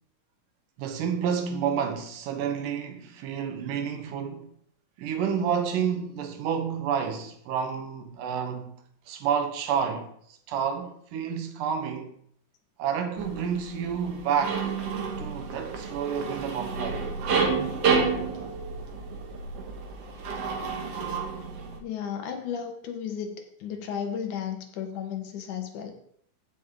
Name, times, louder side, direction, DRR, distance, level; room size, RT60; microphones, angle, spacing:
voice 1, 0.8-4.5 5.0-8.8 9.1-12.1 12.8-14.7 15.2-17.1, right 7 dB, 90° right, 2.8 m, -30 dB
sound 1, 13.2-21.8, right 5 dB, 55° right, 2.1 m, -30 dB
voice 2, 21.8-23.4 23.6-25.9, left 8 dB, 75° left, 2.8 m, -34 dB
15.5 x 6.4 x 3.8 m
omnidirectional pair, 3.6 m